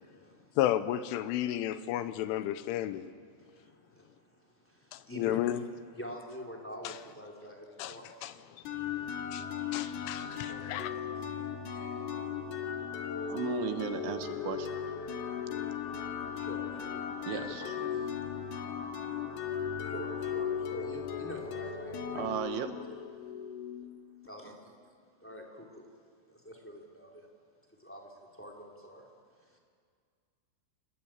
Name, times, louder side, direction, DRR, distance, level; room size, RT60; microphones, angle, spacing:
voice 1, 0.0-0.6 3.4-5.6 5.9-8.1 10.4-12.1 16.3-17.0 17.3-18.1 19.8-22.2 24.2-24.7 25.2-25.9 26.3-27.3 27.8-29.1 29.4-29.6, equal, 5° left, 0 dB, 1.7 m, -47 dB
voice 2, 0.6-3.1 4.9-5.6 6.8-6.9 7.8-8.0 8.2-8.3 9.3-9.5 9.7-10.9, left 12 dB, 80° left, 13 dB, 3.2 m, -32 dB
sound 1, 8.7-24.3, left 8 dB, 65° left, 3.3 m, -37 dB
voice 3, 13.3-14.7 17.3-17.7 22.1-22.7, right 9 dB, 75° right, 9 dB, 3.4 m, -35 dB
28.5 x 19.0 x 8.9 m, 2.1 s
omnidirectional pair, 5.7 m